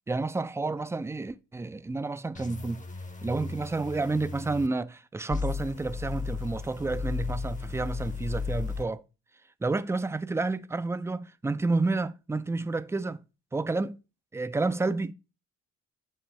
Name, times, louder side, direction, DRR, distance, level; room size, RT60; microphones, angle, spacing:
voice 1, 0.1-2.8 3.2-9.0 9.6-13.2 13.5-14.0 14.3-15.1, right 3 dB, 10° right, 0.3 m, -30 dB
sound 1, 2.3-4.7 5.3-8.8, left 5 dB, 25° left, 0.7 m, -35 dB
7.6 x 3.0 x 4.6 m
supercardioid pair, 60°, 33 cm